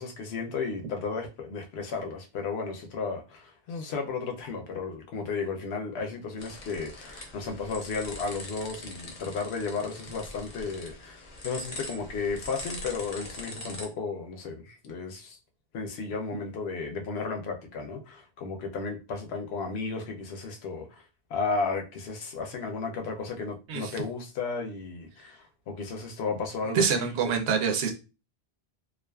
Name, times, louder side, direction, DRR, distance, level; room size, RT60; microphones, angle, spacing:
voice 1, 0.0-15.4 15.7-21.0 21.3-27.1, left 4 dB, 80° left, 0.8 m, -34 dB
sound 1, 6.4-13.9, left 2 dB, 45° left, 0.6 m, -42 dB
voice 2, 26.7-27.9, right 6 dB, 85° right, 0.9 m, -26 dB
2.4 x 2.3 x 2.2 m
omnidirectional pair, 1.1 m